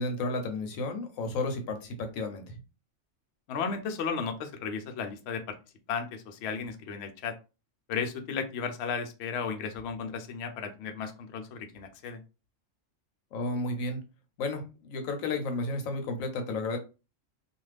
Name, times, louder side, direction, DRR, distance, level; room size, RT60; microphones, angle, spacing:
voice 1, 0.0-2.6 13.3-14.0 14.4-16.8, left 2 dB, 80° left, 6 dB, 1.1 m, -32 dB
voice 2, 3.5-5.5 5.9-7.3 7.9-12.2, left 6 dB, 65° left, 5 dB, 0.7 m, -34 dB
2.5 x 2.3 x 3.2 m, 0.30 s
omnidirectional pair, 1.4 m